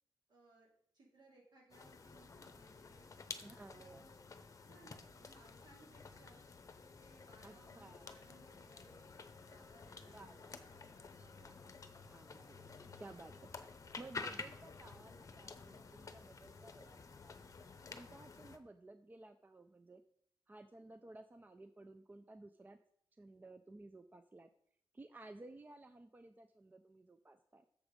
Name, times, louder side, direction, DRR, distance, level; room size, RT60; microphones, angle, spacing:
voice 1, 0.3-3.1 3.7-4.3 4.6-6.5 7.0-9.1 9.4-11.8, right 2 dB, 60° right, -3 dB, 3.8 m, -65 dB
sound 1, 1.7-18.6, left 4 dB, 40° left, 0.8 m, -52 dB
voice 2, 3.4-4.1 7.4-8.2 10.0-10.7 11.4-11.6 12.1-13.4 14.0-17.4 17.9-20.0 20.5-22.8 23.1-24.5 24.9-27.6, right 2 dB, 20° right, 9 dB, 0.4 m, -56 dB
7.1 x 6.8 x 5.1 m, 0.67 s
wide cardioid pair, 135°, 8 cm